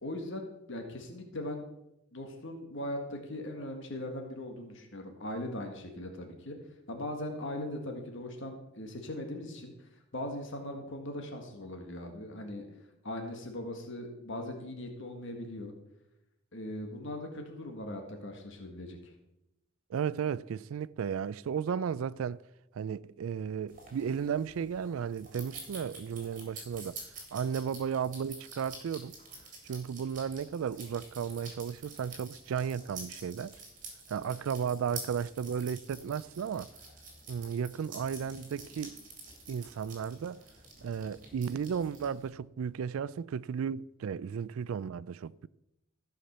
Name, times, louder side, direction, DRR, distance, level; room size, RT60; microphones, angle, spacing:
voice 1, 0.0-1.6 2.1-6.5 6.9-9.7 10.1-12.7 13.0-15.7 16.5-19.1, left 1 dB, 65° left, 1.7 m, -39 dB
voice 2, 19.9-22.4 22.7-27.0 27.3-29.1 29.6-33.6 34.1-36.7 37.3-38.9 39.5-40.4 40.8-45.5, right 7 dB, 80° right, 0.3 m, -34 dB
sound 1, 23.7-42.3, right 3 dB, 40° right, 3.7 m, -48 dB
14.5 x 5.8 x 6.7 m
head